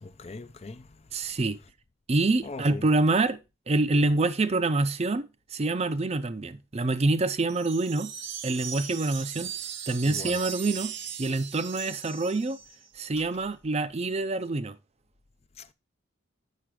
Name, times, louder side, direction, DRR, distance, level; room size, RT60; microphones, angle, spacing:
voice 1, 0.0-0.9 2.4-2.8 10.0-10.4 15.6-15.7, left 3 dB, 30° left, 0.4 m, -40 dB
voice 2, 1.1-1.6 2.1-3.4 3.7-8.1 8.4-9.5 9.9-10.9 11.2-12.6 12.9-14.8, right 2 dB, 30° right, 0.5 m, -26 dB
sound 1, 7.5-12.9, right 8 dB, 60° right, 0.8 m, -38 dB
7.5 x 5.8 x 4.7 m
head